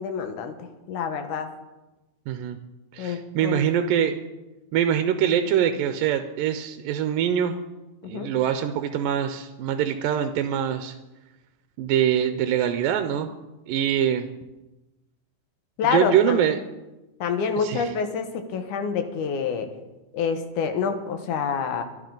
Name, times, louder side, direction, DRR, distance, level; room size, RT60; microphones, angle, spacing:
voice 1, 0.0-1.5 3.0-3.6 8.0-8.3 15.8-16.5 17.2-19.7 20.1-21.8, left 6 dB, 70° left, 7 dB, 2.6 m, -27 dB
voice 2, 2.3-2.6 2.9-4.2 4.7-7.6 8.1-10.9 11.8-13.3 13.7-14.3 15.9-16.6 17.6-17.9, right 9 dB, 85° right, 8 dB, 2.5 m, -24 dB
24.5 x 11.0 x 4.0 m, 1.1 s
omnidirectional pair, 3.9 m